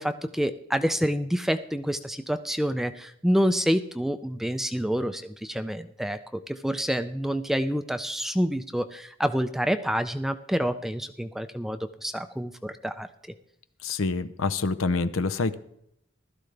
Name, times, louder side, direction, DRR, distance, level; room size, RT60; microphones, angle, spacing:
voice 1, 0.0-13.1, equal, ahead, 10 dB, 0.4 m, -28 dB
voice 2, 13.8-15.6, left 3 dB, 80° left, 13 dB, 0.7 m, -26 dB
15.5 x 12.5 x 3.3 m, 0.75 s
head